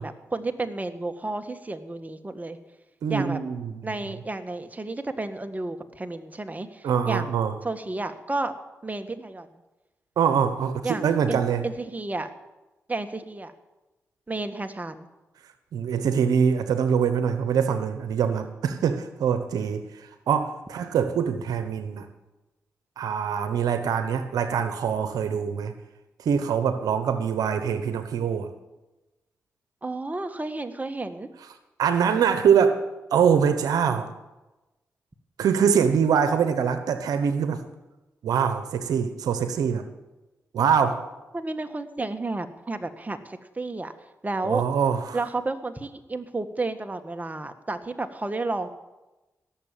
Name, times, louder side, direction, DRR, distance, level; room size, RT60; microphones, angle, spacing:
voice 1, 0.0-2.6 3.1-3.4 3.8-7.3 7.6-8.5 8.8-9.5 10.8-12.3 12.9-13.5 14.3-15.1 29.8-31.3 41.3-43.9 44.2-44.6 45.1-48.7, right 2 dB, 25° right, 7 dB, 1.6 m, -31 dB
voice 2, 3.0-4.0 6.8-7.5 10.2-11.6 15.7-22.1 23.0-25.7 26.2-28.5 31.8-32.8 33.1-34.1 35.4-37.6 38.2-39.8 40.5-41.1 44.4-45.2, right 7 dB, 85° right, 9 dB, 1.0 m, -24 dB
17.5 x 7.3 x 9.0 m, 1.1 s
supercardioid pair, 45°, 6 cm